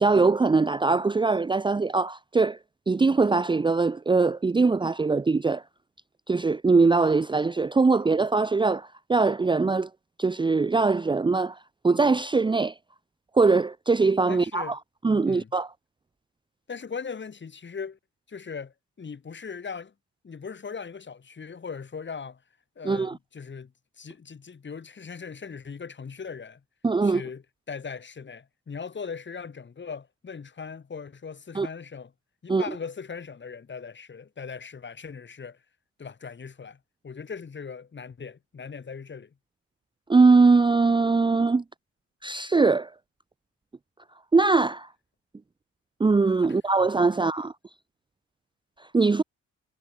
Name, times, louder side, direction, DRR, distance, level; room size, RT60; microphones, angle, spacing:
voice 1, 0.0-2.6 2.9-5.6 6.3-9.9 10.2-11.6 11.8-12.7 13.3-14.8 15.0-15.7 22.8-23.2 26.8-27.2 31.5-31.7 32.5-32.6 40.1-41.6 42.2-42.9 44.3-44.9 46.0-47.5 48.9-49.2, right 4 dB, 15° right, 0.6 m, -21 dB
voice 2, 14.3-14.8 15.2-15.5 16.7-18.0 18.3-19.9 20.2-22.4 22.7-26.6 27.0-32.1 32.4-35.6 36.0-39.3 46.5-46.6, left 5 dB, 40° left, 5.1 m, -39 dB
cardioid pair, 90°, 30 cm